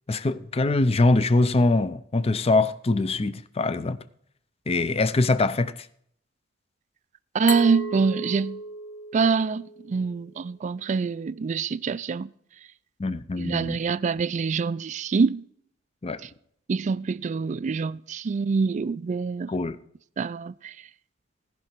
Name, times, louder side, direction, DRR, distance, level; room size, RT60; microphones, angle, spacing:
voice 1, 0.1-4.0 4.7-5.7 13.0-13.8 16.0-16.2 19.5-19.8, left 2 dB, 30° left, 0.5 m, -23 dB
voice 2, 7.3-8.6 9.1-12.3 13.4-15.4 16.7-19.5 20.2-20.7, right 5 dB, 40° right, 0.3 m, -25 dB
Glass, 7.5-10.3, left 1 dB, 75° left, 0.9 m, -36 dB
17.5 x 5.9 x 4.4 m
head